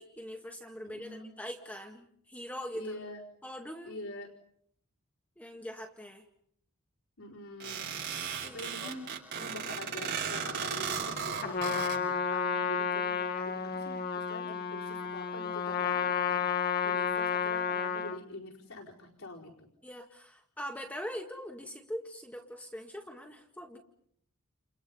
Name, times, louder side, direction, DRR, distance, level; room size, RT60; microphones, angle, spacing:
voice 1, 0.0-2.9 3.4-4.0 5.4-6.2 8.4-9.0 15.9-16.1 19.8-23.8, equal, 5° left, 2 dB, 1.8 m, -42 dB
voice 2, 0.8-1.3 2.7-3.2 3.8-4.3 7.2-8.0 8.4-9.0 9.4-16.5 16.8-19.7, left 2 dB, 80° left, -2 dB, 4.8 m, -44 dB
sound 1, 7.6-12.0, right 7 dB, 50° right, 7.6 m, -35 dB
Trumpet, 11.4-18.2, left 7 dB, 45° left, 1.8 m, -31 dB
29.5 x 29.5 x 5.5 m, 0.70 s
head